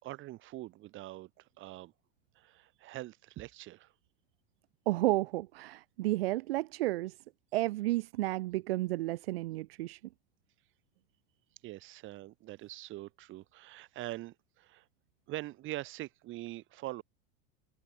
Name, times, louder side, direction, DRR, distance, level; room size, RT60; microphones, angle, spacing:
voice 1, 0.0-1.9 2.4-3.9 11.6-14.9 15.3-17.0, right 17 dB, 40° right, 7.1 m, -43 dB
voice 2, 4.9-7.1 7.5-10.0, right 17 dB, 80° right, 2.0 m, -32 dB
supercardioid pair, 140°, 29 cm